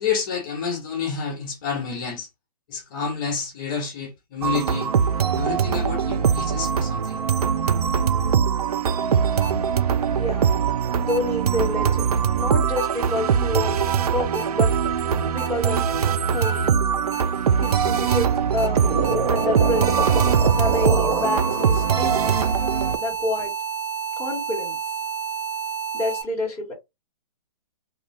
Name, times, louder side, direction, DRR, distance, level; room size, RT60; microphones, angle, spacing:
voice 1, 0.0-2.3 2.7-4.9 5.3-7.2, left 6 dB, 35° left, 0.9 m, -29 dB
sound 1, 4.4-23.0, right 7 dB, 85° right, 0.4 m, -22 dB
sound 2, 9.4-9.5 11.1-11.2 12.8-12.9 14.3-14.4 15.4-15.5 16.4-16.5 17.1-17.2 17.6-17.7 18.1-18.2 18.6-18.7 19.0-26.2, right 7 dB, 10° right, 0.3 m, -30 dB
voice 2, 10.1-10.5 11.0-13.8 14.1-14.7 15.3-15.8 16.3-16.8 17.6-18.9 19.3-20.1 20.5-22.3 23.0-23.5 24.2-24.8 25.9-26.7, left 2 dB, 10° left, 1.1 m, -28 dB
sound 3, 18.5-22.7 23.1-23.4, right 2 dB, 45° right, 1.5 m, -27 dB
2.7 x 2.2 x 3.1 m
hypercardioid pair, 150°, 19 cm